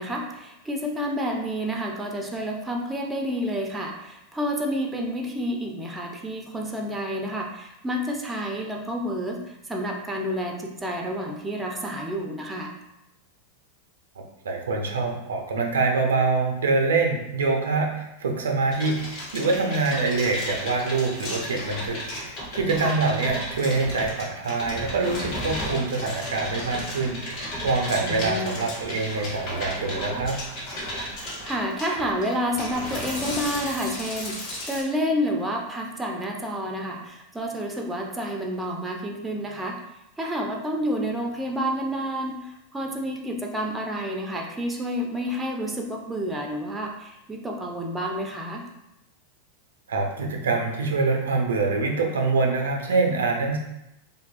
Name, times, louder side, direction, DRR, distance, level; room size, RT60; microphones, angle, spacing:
voice 1, 0.0-12.7 22.8-23.0 28.0-28.6 31.2-39.8 40.2-48.6, equal, 10° right, 1 dB, 0.4 m, -29 dB
voice 2, 14.2-30.4 49.9-53.6, right 3 dB, 80° right, 2 dB, 0.4 m, -25 dB
sound 1, 18.7-34.8, left 1 dB, 55° left, 1.0 m, -34 dB
2.6 x 2.2 x 2.4 m, 0.88 s
hypercardioid pair, 100°, 0 cm